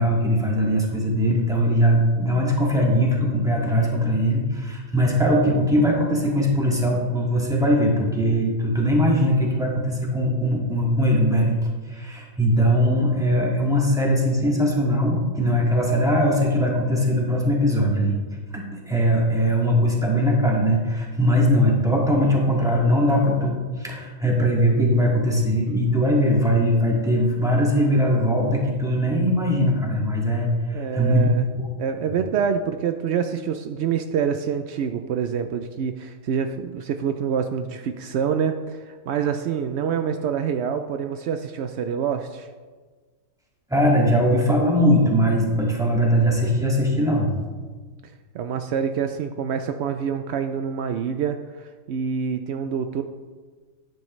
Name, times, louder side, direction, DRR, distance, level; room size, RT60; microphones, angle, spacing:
voice 1, 0.0-11.5 11.9-18.2 18.5-31.3 43.7-47.3, equal, ahead, -3 dB, 1.8 m, -20 dB
voice 2, 30.7-31.5 31.8-42.5 48.3-53.0, right 7 dB, 85° right, 7 dB, 0.5 m, -26 dB
12.0 x 9.3 x 3.2 m, 1.4 s
omnidirectional pair, 1.7 m